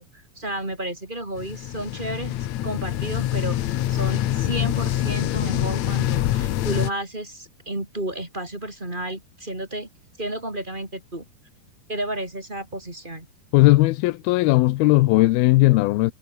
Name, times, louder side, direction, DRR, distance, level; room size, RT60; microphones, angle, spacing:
voice 1, 0.0-3.6 3.9-9.9 10.2-11.2 11.9-13.3, right 1 dB, 15° right, 4.0 m, -32 dB
sound 1, 1.4-6.9, left 13 dB, 65° left, 1.9 m, -25 dB
voice 2, 13.5-16.1, left 19 dB, 90° left, 2.7 m, -17 dB
omnidirectional pair, 4.3 m